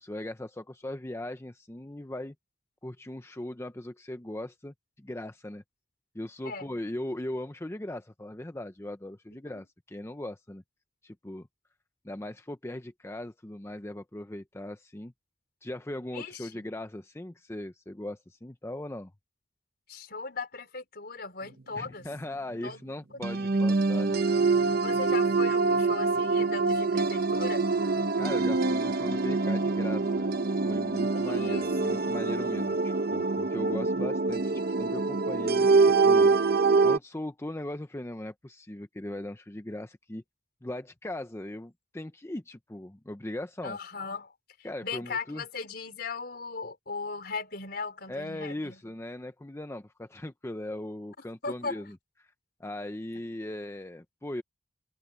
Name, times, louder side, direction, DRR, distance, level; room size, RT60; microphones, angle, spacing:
voice 1, 0.0-2.3 2.8-5.6 6.1-10.6 11.0-11.5 12.0-15.1 15.6-19.1 21.7-24.2 28.2-30.3 30.6-36.5 36.8-40.2 40.6-43.8 44.6-45.4 48.1-52.3 52.6-54.4, left 1 dB, 15° left, 0.6 m, -39 dB
voice 2, 16.1-16.6 19.9-22.1 22.6-22.8 23.4-23.7 24.8-27.7 31.1-32.1 43.6-44.3 44.8-48.8 51.4-51.8, left 4 dB, 60° left, 4.8 m, -38 dB
sound 1, 23.2-37.0, right 3 dB, 55° right, 0.9 m, -25 dB
head